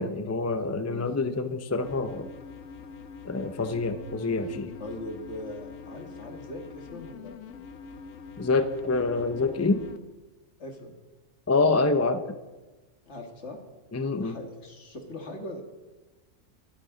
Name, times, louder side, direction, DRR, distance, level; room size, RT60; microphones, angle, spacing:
voice 1, 0.0-2.3 3.2-4.7 8.4-9.8 11.5-12.2 13.9-14.4, left 3 dB, 20° left, 9 dB, 0.4 m, -26 dB
sound 1, 1.8-10.0, left 6 dB, 80° left, 1.2 m, -44 dB
voice 2, 4.8-7.3 10.6-11.0 13.1-13.6 14.0-15.6, left 1 dB, 60° left, 4 dB, 2.1 m, -40 dB
23.0 x 9.6 x 3.9 m, 1.2 s
omnidirectional pair, 1.4 m